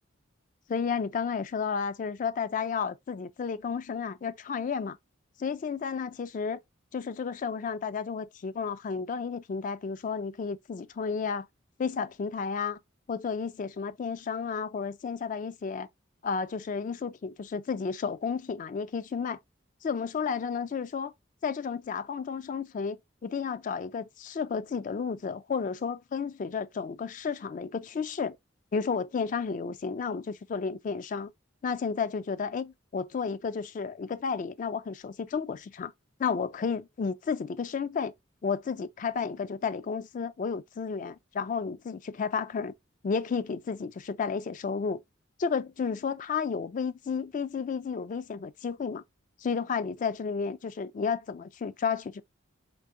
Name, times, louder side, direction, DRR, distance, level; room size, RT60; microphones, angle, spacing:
voice 1, 0.7-5.0 5.4-6.6 6.9-11.5 11.8-12.8 13.1-15.9 16.2-19.4 19.8-21.1 21.4-28.4 28.7-31.3 31.6-35.9 36.2-38.1 38.4-42.7 43.0-45.0 45.4-49.0 49.4-52.2, left 5 dB, 40° left, 0.3 m, -32 dB
4.6 x 3.4 x 2.4 m
head